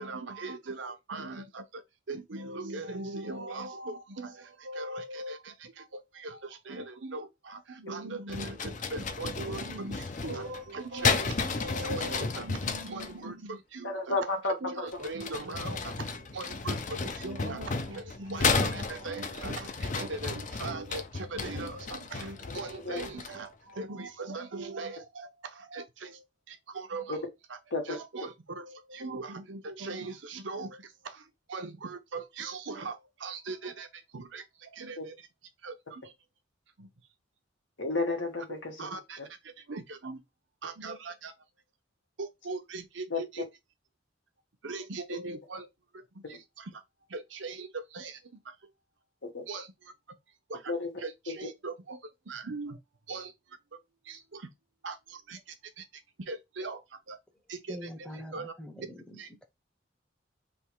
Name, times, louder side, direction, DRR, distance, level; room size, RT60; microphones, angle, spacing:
voice 1, 0.0-14.2 14.6-27.2 27.5-27.6 27.9-35.1 35.6-36.1 36.8-36.9 38.5-40.2 40.6-41.3 42.2-43.5 44.6-45.7 45.9-46.7 47.1-48.6 49.5-49.9 50.5-50.7 51.0-52.0 52.2-52.8 53.1-53.6 54.0-54.5 54.8-55.8 56.2-57.2 57.5-57.9 58.3-58.5 59.2-59.3, right 3 dB, 80° right, 0.8 m, -40 dB
sound 1, 8.3-13.1 14.9-23.5, left 4 dB, 40° left, 0.5 m, -33 dB
voice 2, 13.8-14.9 22.9-23.0 27.1-27.2 27.7-28.0 35.0-35.1 37.8-38.7 39.2-39.3 43.1-43.2 46.2-46.4 49.3-49.4 50.7-50.9 51.3-51.4, left 3 dB, 85° left, 1.6 m, -31 dB
voice 3, 57.7-59.2, equal, 5° left, 0.8 m, -43 dB
3.5 x 2.9 x 4.5 m
head